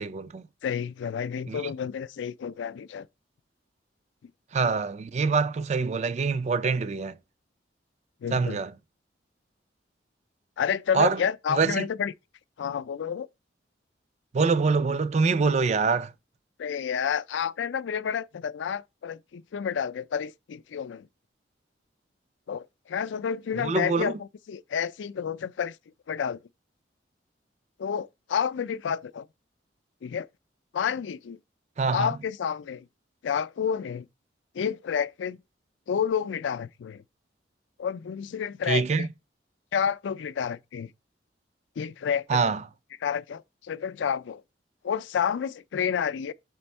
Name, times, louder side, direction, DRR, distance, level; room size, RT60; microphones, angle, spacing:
voice 1, 0.0-0.4 1.5-1.6 4.5-7.2 8.3-8.7 10.9-11.2 11.5-11.9 14.3-16.1 23.6-24.2 31.8-32.1 38.7-39.1 42.3-42.6, right 4 dB, 35° right, 0.3 m, -25 dB
voice 2, 0.6-3.1 8.2-8.6 10.6-12.1 12.6-13.3 16.6-21.1 22.5-25.8 26.1-26.4 27.8-29.3 30.0-30.3 30.7-31.4 31.9-32.9 33.2-34.1 34.5-35.4 35.9-37.0 37.8-39.1 39.7-40.9 41.8-42.4 43.0-44.4 44.8-46.3, left 7 dB, 80° left, 0.4 m, -30 dB
5.9 x 4.4 x 4.3 m
head